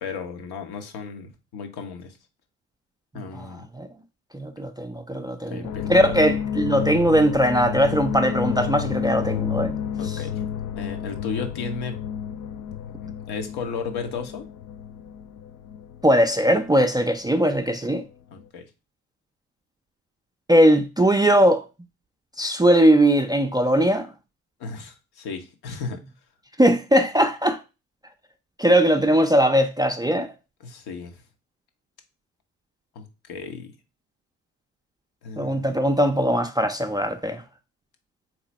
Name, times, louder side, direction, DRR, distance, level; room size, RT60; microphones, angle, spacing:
voice 1, 0.0-2.2 3.1-3.7 5.5-6.2 10.0-10.5 10.8-12.0 13.0-14.5 18.3-18.7 24.6-26.0 30.6-31.2 32.9-33.7 35.2-35.7, left 5 dB, 60° left, 1.1 m, -34 dB
voice 2, 4.3-5.6 5.9-9.7 16.0-18.0 20.5-21.7 22.4-24.1 26.6-27.6 28.6-30.3 35.4-37.4, equal, 10° right, 0.5 m, -20 dB
sound 1, 5.6-17.8 18.0-18.5, left 8 dB, 45° left, 0.5 m, -31 dB
4.0 x 3.0 x 4.1 m
hypercardioid pair, 45°, 42 cm